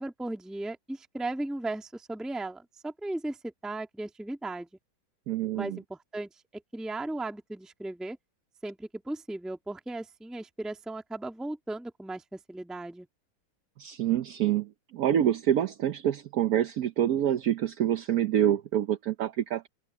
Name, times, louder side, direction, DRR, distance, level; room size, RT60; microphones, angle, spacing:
voice 1, 0.0-4.7 5.5-8.2 8.6-13.1, right 2 dB, ahead, 1.6 m, -36 dB
voice 2, 5.3-5.8 13.8-19.7, right 11 dB, 65° right, 0.9 m, -27 dB
omnidirectional pair, 2.3 m